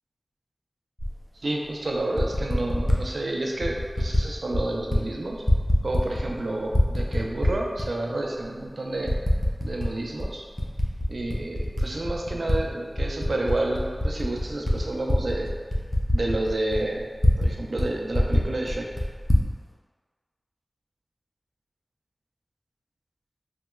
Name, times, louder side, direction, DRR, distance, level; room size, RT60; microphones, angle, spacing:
Typing, 1.0-1.1 2.0-3.0 3.6-4.2 4.5-5.0 5.3-6.4 6.7-7.9 8.4-8.5 9.1-9.9 10.2-12.6 12.9-17.5 17.8-17.9 18.1-19.5, left 1 dB, 15° left, 0.5 m, -24 dB
voice 1, 1.4-5.4 5.8-9.1 9.6-10.4 11.1-15.5 16.1-17.1 17.4-18.9, right 2 dB, 75° right, -1 dB, 0.4 m, -29 dB
3.1 x 2.8 x 2.2 m, 1.6 s
wide cardioid pair, 50°, 0 cm